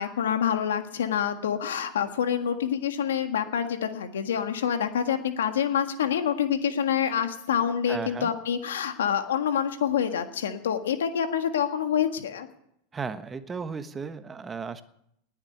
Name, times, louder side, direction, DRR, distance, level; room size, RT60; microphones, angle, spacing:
voice 1, 0.0-12.5, left 8 dB, 80° left, 8 dB, 1.7 m, -27 dB
voice 2, 7.9-8.3 12.9-14.8, right 5 dB, 20° right, 11 dB, 1.2 m, -35 dB
19.5 x 7.4 x 9.8 m, 0.76 s
hypercardioid pair, 100°, 0 cm